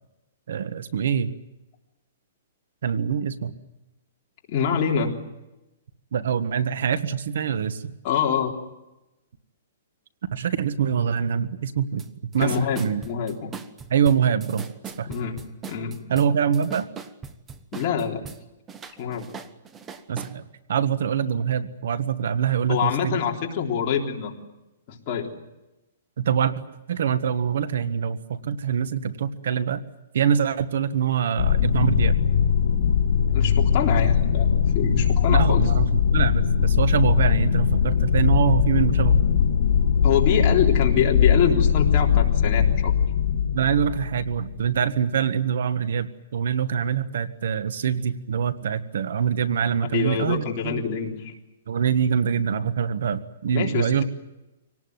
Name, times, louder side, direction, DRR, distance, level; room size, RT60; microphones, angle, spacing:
voice 1, 0.5-1.3 2.8-3.5 6.1-7.9 10.3-12.0 12.3-13.0 13.9-14.7 15.0-15.1 16.1-16.9 20.1-20.4 20.7-23.2 26.2-26.5 26.9-29.8 30.1-32.2 35.3-39.2 43.5-50.9 51.7-54.0, right 8 dB, 70° right, 13 dB, 1.5 m, -24 dB
voice 2, 4.5-5.1 8.0-8.5 12.4-13.6 15.1-16.0 17.7-18.2 19.0-19.3 22.7-24.3 24.9-25.3 33.3-35.7 40.0-42.9 49.9-51.3 53.5-54.0, left 7 dB, 35° left, 0 dB, 3.6 m, -25 dB
sound 1, 12.0-12.1 12.3-18.4 18.7-20.3, right 6 dB, 15° right, 1.0 m, -39 dB
sound 2, 31.4-44.7, left 7 dB, 60° left, 3.1 m, -20 dB
25.5 x 18.5 x 9.5 m, 1.0 s
hypercardioid pair, 165°, 0 cm